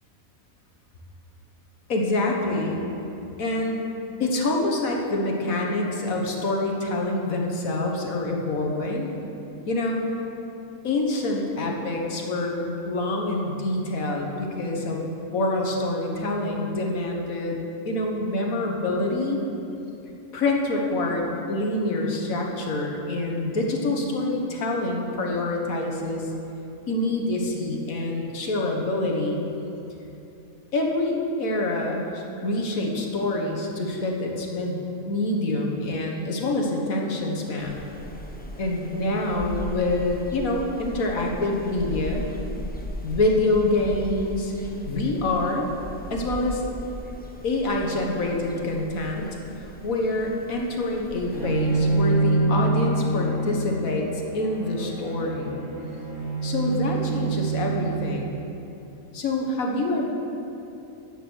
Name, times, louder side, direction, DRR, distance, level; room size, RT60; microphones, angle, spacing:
voice 1, 1.9-2.8 3.4-3.9 4.2-9.1 9.7-10.0 10.8-19.4 20.3-26.3 26.9-29.4 30.7-34.8 35.1-37.8 38.6-42.3 43.0-45.7 46.1-46.6 47.4-49.3 49.6-55.6 56.4-58.3 59.1-60.1, left 2 dB, 85° left, 0 dB, 1.8 m, -26 dB
sound 1, 37.6-52.1, equal, 10° left, 0.7 m, -38 dB
Bowed string instrument, 51.3-58.4, right 3 dB, 60° right, 3.2 m, -26 dB
10.0 x 8.8 x 6.3 m, 2.9 s
omnidirectional pair, 1.4 m